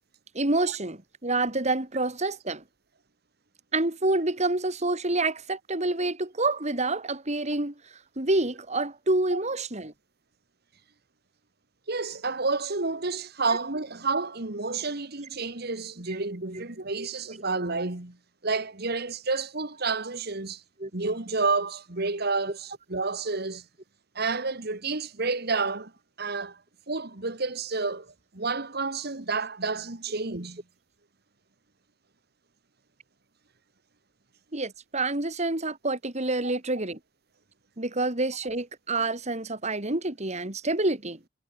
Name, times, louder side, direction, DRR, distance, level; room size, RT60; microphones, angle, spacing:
voice 1, 0.3-2.6 3.7-7.7 8.2-9.9 20.8-20.9 34.5-37.0 37.8-41.2, right 2 dB, 35° right, 3.3 m, -27 dB
voice 2, 11.9-18.2 18.4-20.6 20.9-23.6 24.2-25.9 26.2-26.6 26.9-30.6, right 3 dB, 55° right, 2.2 m, -30 dB
head